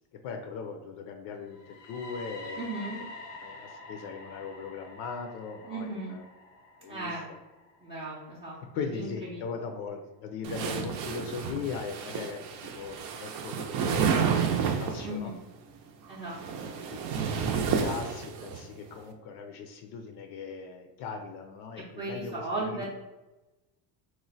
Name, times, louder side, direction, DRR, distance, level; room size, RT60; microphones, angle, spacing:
voice 1, 0.2-2.7 3.4-6.2 6.8-7.1 8.7-12.4 12.7-14.1 14.8-15.3 16.9-22.9, left 5 dB, 65° left, 5 dB, 0.5 m, -39 dB
sound 1, 1.5-9.4, left 2 dB, 85° left, 0.8 m, -47 dB
voice 2, 2.6-3.0 5.6-6.1 6.8-7.3 7.8-9.4 15.0-15.4 16.1-16.7 21.9-22.9, right 2 dB, 15° right, -7 dB, 0.5 m, -36 dB
sound 2, 10.4-15.1 16.1-18.6, right 6 dB, 70° right, 0.6 m, -30 dB
3.1 x 2.1 x 3.9 m, 1.1 s
cardioid pair, 145°, 42 cm